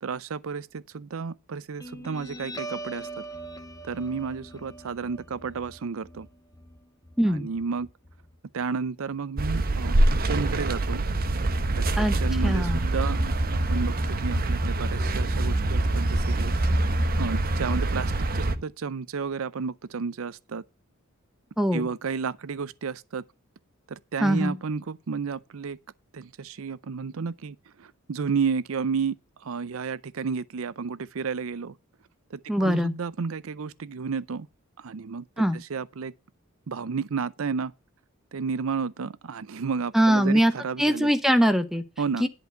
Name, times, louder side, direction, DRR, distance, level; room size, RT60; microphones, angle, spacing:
voice 1, 0.0-3.1 3.8-6.3 7.3-7.9 8.5-11.0 11.7-11.9 12.2-13.2 13.5-16.5 17.2-20.6 21.7-23.2 23.9-25.8 26.1-31.7 32.3-34.5 34.8-35.2 35.5-36.1 36.7-37.7 38.3-41.1 42.0-42.2, right 5 dB, 65° right, 0.5 m, -32 dB
Guitar, 1.8-8.8, right 2 dB, 15° left, 1.5 m, -42 dB
voice 2, 7.2-7.5 12.0-12.2 12.4-12.8 21.6-21.9 24.2-24.6 32.5-32.9 35.4-35.6 39.9-40.5 40.8-41.8 42.2-42.3, equal, ahead, 0.9 m, -22 dB
sound 1, 9.4-18.6, right 2 dB, 45° right, 0.9 m, -25 dB
11.0 x 4.5 x 7.8 m
head